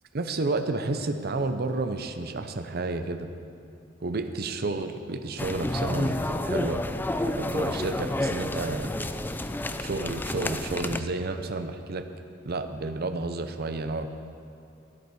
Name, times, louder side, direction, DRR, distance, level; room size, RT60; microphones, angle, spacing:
voice 1, 0.1-3.3 4.0-6.8 7.1-8.9 9.8-12.0 12.4-14.1, right 3 dB, 55° right, 8 dB, 0.7 m, -31 dB
sound 1, 5.4-11.0, left 1 dB, 10° left, 0.4 m, -30 dB
12.5 x 11.0 x 4.8 m, 2.6 s
head